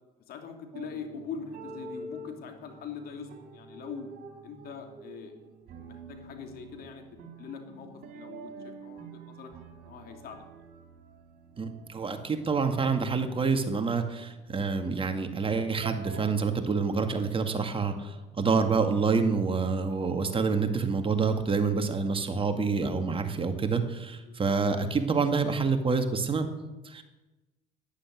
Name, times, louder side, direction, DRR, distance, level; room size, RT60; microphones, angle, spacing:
voice 1, 0.3-4.1 4.4-5.3 5.8-7.0 7.4-9.5 9.8-10.4 24.2-24.6, left 6 dB, 60° left, 4 dB, 3.0 m, -42 dB
sound 1, 0.7-16.3, right 3 dB, 60° right, 3.5 m, -47 dB
voice 2, 11.6-26.5 26.8-27.0, right 4 dB, 30° right, 6 dB, 2.1 m, -27 dB
11.5 x 10.5 x 9.3 m, 1.1 s
supercardioid pair, 75°, 17 cm